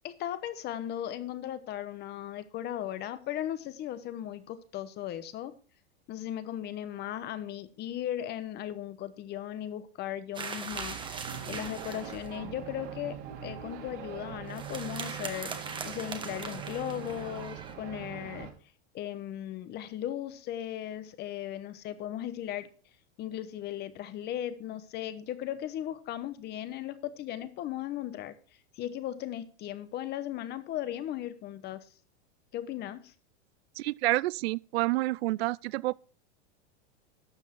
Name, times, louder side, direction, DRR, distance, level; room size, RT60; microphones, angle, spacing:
voice 1, 0.0-5.5 6.1-11.0 11.5-15.5 15.8-18.5 18.9-22.7 23.2-28.3 28.7-31.9 32.5-33.1, left 11 dB, 30° left, 1.0 m, -37 dB
sound 1, 10.3-12.4 14.5-17.7, right 5 dB, 15° right, 1.2 m, -40 dB
sound 2, 10.7-18.5, right 9 dB, 50° right, 2.4 m, -42 dB
voice 2, 33.8-35.9, right 19 dB, 70° right, 0.5 m, -28 dB
12.0 x 7.1 x 4.5 m
supercardioid pair, 135°, 32 cm